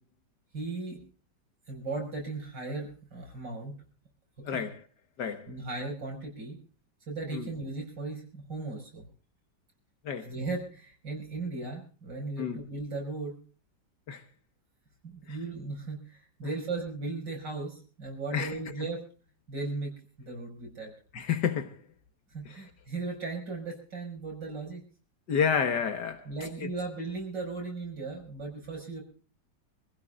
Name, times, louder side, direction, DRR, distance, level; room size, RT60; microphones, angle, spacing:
voice 1, 0.5-1.0 1.7-3.7 4.5-4.6 5.5-6.6 7.1-9.1 10.2-13.4 15.0-19.0 19.5-19.9 20.2-20.9 22.3-24.8 26.2-29.0, right 3 dB, 85° right, 6.4 m, -37 dB
voice 2, 4.4-4.8 5.2-5.5 7.3-7.5 10.0-10.3 12.4-12.6 14.1-14.2 15.3-15.4 18.3-18.9 21.1-21.8 22.5-22.6 25.3-26.3 26.6-26.7, left 7 dB, 75° left, 1.9 m, -30 dB
26.0 x 15.5 x 2.4 m
omnidirectional pair, 1.9 m